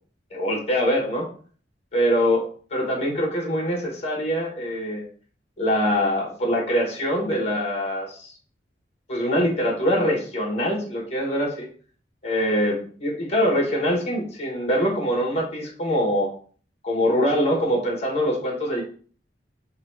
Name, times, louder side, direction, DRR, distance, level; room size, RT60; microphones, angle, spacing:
voice 1, 0.3-1.3 1.9-2.4 2.7-5.0 5.6-8.3 9.1-11.7 12.2-16.3 16.8-18.8, equal, 35° left, -1 dB, 1.2 m, -23 dB
3.8 x 2.3 x 4.4 m, 0.44 s
head